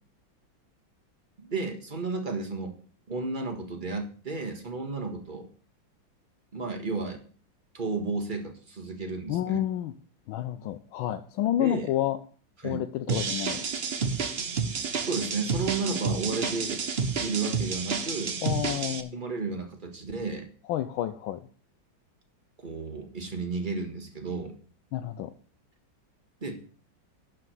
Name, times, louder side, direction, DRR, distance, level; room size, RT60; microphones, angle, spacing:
voice 1, 1.4-2.7 3.1-5.5 6.5-7.2 7.7-9.6 11.6-11.9 12.6-12.8 15.0-16.8 17.2-18.3 19.1-20.5 22.6-24.5 26.4-26.6, right 3 dB, 25° right, 4 dB, 1.7 m, -32 dB
voice 2, 9.3-9.9 10.3-12.2 12.6-13.6 18.4-19.2 20.7-21.4 24.9-25.3, left 12 dB, 85° left, 9 dB, 1.4 m, -29 dB
sound 1, 13.1-19.0, right 5 dB, 45° right, 0.9 m, -30 dB
11.0 x 5.1 x 7.7 m, 0.42 s
omnidirectional pair, 2.1 m